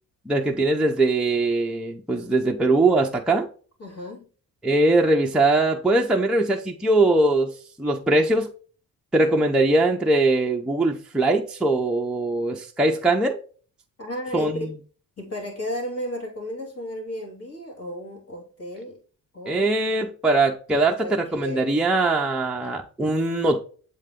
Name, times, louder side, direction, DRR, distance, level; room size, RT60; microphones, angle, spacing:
voice 1, 0.3-3.5 4.6-7.5 7.8-8.5 9.1-13.4 14.3-14.7 19.5-23.6, right 2 dB, ahead, 0.6 m, -21 dB
voice 2, 3.8-4.3 14.0-14.7 15.2-19.0 19.3-19.7 21.0-21.7, equal, 40° left, 3.0 m, -33 dB
7.6 x 3.9 x 3.6 m
wide cardioid pair, 155°, 37 cm